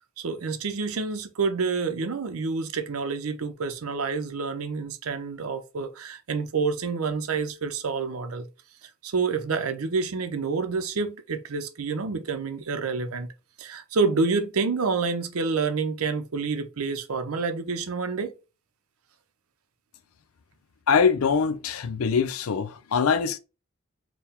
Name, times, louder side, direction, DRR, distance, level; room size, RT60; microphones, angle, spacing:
voice 1, 0.2-8.5 9.0-13.3 13.6-18.3, right 4 dB, 85° right, 0.6 m, -28 dB
voice 2, 20.9-23.4, left 6 dB, 80° left, 0.5 m, -23 dB
4.5 x 2.2 x 3.5 m
head